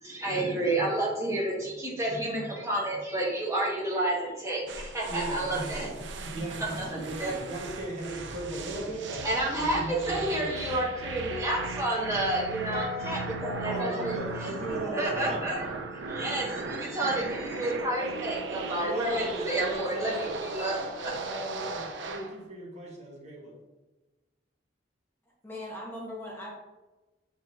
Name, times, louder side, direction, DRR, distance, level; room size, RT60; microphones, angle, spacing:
voice 1, 0.0-5.9 6.2-6.3 6.8-7.4 9.2-14.1 14.7-21.1, right 1 dB, 15° right, -4 dB, 1.6 m, -30 dB
sound 1, 4.7-22.4, right 3 dB, 75° right, 0.7 m, -37 dB
voice 2, 5.1-5.9 6.3-9.3 9.6-10.8 13.6-15.5 18.8-20.4 21.2-23.6, right 1 dB, 40° right, -2 dB, 1.5 m, -37 dB
sound 2, 11.3-15.6, left 5 dB, 60° left, 0.6 m, -41 dB
voice 3, 25.4-26.5, left 1 dB, 10° left, -4 dB, 1.1 m, -39 dB
7.6 x 5.2 x 2.7 m, 1.1 s
head